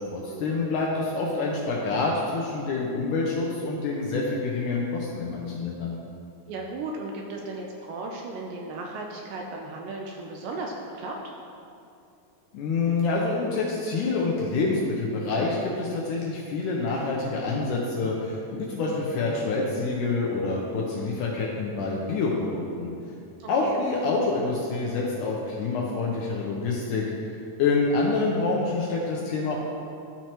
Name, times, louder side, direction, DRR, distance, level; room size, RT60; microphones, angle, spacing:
voice 1, 0.1-6.0 12.5-22.9 23.5-27.0 27.6-29.6, left 3 dB, 80° left, -3 dB, 1.9 m, -27 dB
voice 2, 6.5-11.2 23.4-23.8, right 2 dB, 80° right, 0 dB, 2.0 m, -36 dB
12.0 x 4.5 x 2.9 m, 2.6 s
omnidirectional pair, 4.2 m